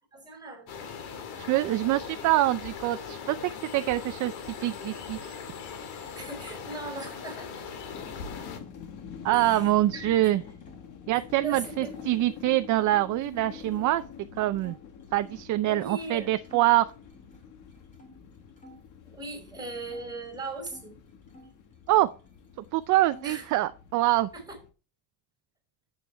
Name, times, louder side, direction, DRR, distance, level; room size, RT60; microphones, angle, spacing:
voice 1, 0.1-0.7 6.1-7.7 9.3-10.4 11.4-11.9 15.6-16.3 19.1-21.0 23.2-23.5 24.3-24.6, right 3 dB, 10° right, 1 dB, 4.8 m, -39 dB
sound 1, 0.7-8.6, left 6 dB, 75° left, 2.3 m, -40 dB
voice 2, 1.4-3.4 3.7-4.3 4.6-5.3 9.2-10.4 11.1-14.0 14.4-14.8 15.1-16.9 21.9-22.1 22.7-24.3, right 15 dB, 50° right, 11 dB, 0.5 m, -25 dB
sound 2, 7.9-24.7, left 7 dB, 50° left, 1.5 m, -47 dB
sound 3, 8.0-10.8 11.1-12.1 12.7-15.6 16.0-16.2 16.4-18.9 19.2-20.9 21.3-22.4 22.6-23.5, left 1 dB, 20° left, 2.5 m, -57 dB
10.0 x 7.8 x 3.4 m, 0.35 s
cardioid pair, 165°, 39 cm